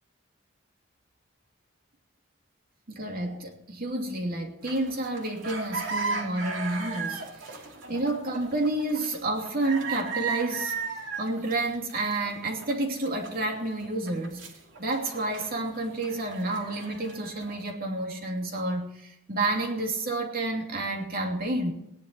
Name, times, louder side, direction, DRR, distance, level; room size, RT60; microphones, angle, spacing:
voice 1, 2.9-7.6 7.9-10.7 11.2-14.4 14.8-21.7, right 2 dB, 50° right, 2 dB, 2.8 m, -30 dB
sound 1, 4.6-17.6, right 4 dB, 70° right, 2.8 m, -37 dB
18.0 x 11.0 x 4.6 m, 0.81 s
head